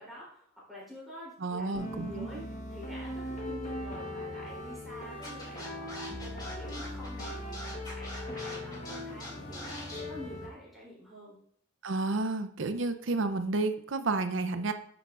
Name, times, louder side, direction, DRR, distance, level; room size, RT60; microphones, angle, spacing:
voice 1, 0.0-7.6 7.9-9.7 10.0-11.4, equal, ahead, -7 dB, 3.4 m, -48 dB
voice 2, 1.4-2.4 11.8-14.7, right 3 dB, 65° right, 9 dB, 0.6 m, -31 dB
sound 1, 1.7-10.5, left 1 dB, 35° left, 1.3 m, -39 dB
Scratching (performance technique), 5.2-10.0, left 1 dB, 20° left, 2.3 m, -43 dB
9.0 x 6.9 x 2.5 m, 0.66 s
head